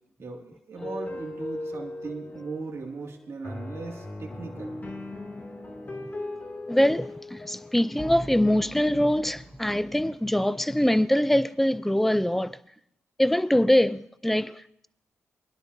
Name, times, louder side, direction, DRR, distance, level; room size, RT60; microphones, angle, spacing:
voice 1, 0.2-4.8, right 4 dB, 55° right, 2.4 m, -38 dB
sound 1, 0.7-10.1, left 1 dB, 30° left, 2.6 m, -39 dB
voice 2, 6.7-12.6 13.2-14.9, left 1 dB, 5° left, 0.5 m, -23 dB
22.0 x 11.5 x 2.7 m
cardioid pair, 60°, 5 cm